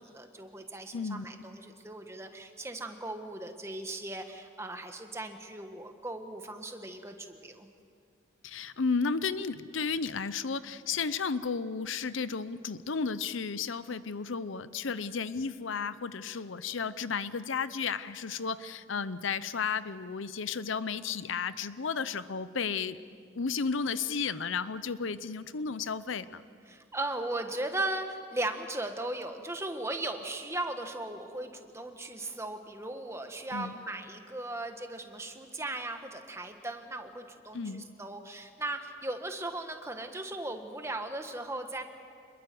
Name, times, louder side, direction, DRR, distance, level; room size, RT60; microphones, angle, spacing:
voice 1, 0.0-7.7 26.7-41.8, right 2 dB, 15° right, 6 dB, 1.5 m, -37 dB
voice 2, 0.9-1.2 8.4-23.0 23.3-26.4 33.5-33.7 37.5-37.9, left 5 dB, 75° left, 15 dB, 0.7 m, -33 dB
27.0 x 21.5 x 7.8 m, 2.2 s
head